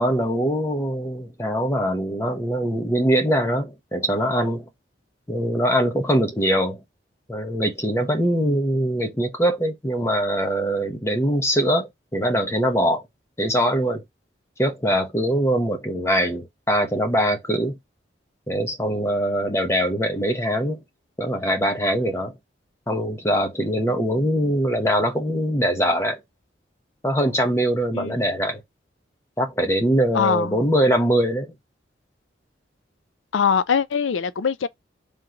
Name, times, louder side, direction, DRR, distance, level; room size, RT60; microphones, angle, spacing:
voice 1, 0.0-4.7 5.3-6.8 7.3-13.0 13.4-14.0 14.6-17.8 18.5-20.8 21.2-22.3 22.9-26.2 27.0-28.6 29.4-31.5, equal, 15° left, 0.9 m, -22 dB
voice 2, 30.1-30.6 33.3-34.7, left 6 dB, 90° left, 0.4 m, -22 dB
3.6 x 3.0 x 3.8 m
head